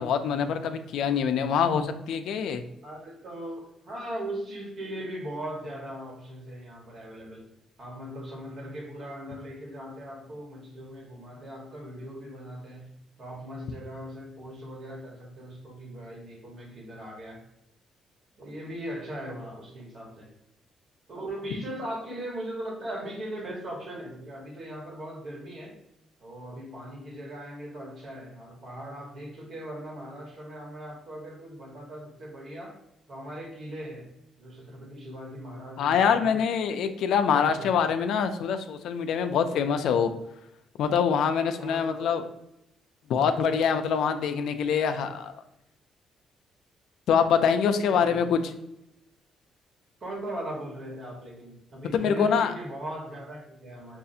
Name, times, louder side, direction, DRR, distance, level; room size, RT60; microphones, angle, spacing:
voice 1, 0.0-2.6 35.8-40.1 40.8-42.2 43.1-45.3 47.1-48.4 51.9-52.5, left 7 dB, 80° left, 8 dB, 0.4 m, -24 dB
voice 2, 2.8-7.5 7.8-12.9 13.2-17.4 18.4-20.3 21.1-25.8 26.2-32.8 33.1-34.1 34.4-36.5 37.3-37.9 41.6-42.1 47.9-48.2 50.0-54.0, right 1 dB, 55° right, -1 dB, 1.4 m, -39 dB
5.4 x 2.4 x 2.6 m, 0.84 s
cardioid pair, 90°, 0 cm